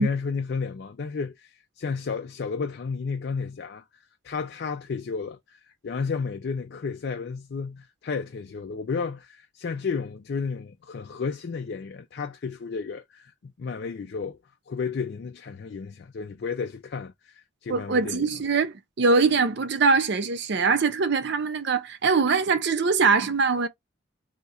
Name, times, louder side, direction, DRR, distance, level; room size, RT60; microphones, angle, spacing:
voice 1, 0.0-3.8 4.2-14.4 14.7-18.3, left 5 dB, 50° left, 0.4 m, -32 dB
voice 2, 17.7-23.7, right 4 dB, 55° right, 0.5 m, -22 dB
2.8 x 2.4 x 4.1 m
head